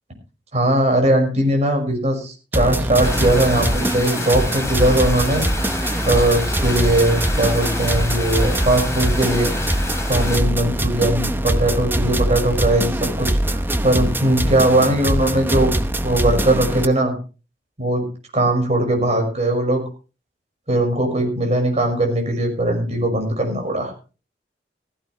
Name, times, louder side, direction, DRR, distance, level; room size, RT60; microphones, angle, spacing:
voice 1, 0.5-5.4 6.0-9.5 10.1-15.7 16.0-17.1 17.8-18.0 18.3-19.8 20.7-23.9, right 1 dB, 40° right, 2 dB, 5.8 m, -19 dB
sound 1, 2.5-16.8, right 1 dB, 10° right, 0.9 m, -22 dB
sound 2, 3.0-10.4, left 2 dB, 15° left, 3.2 m, -30 dB
16.0 x 15.5 x 3.3 m, 0.35 s
head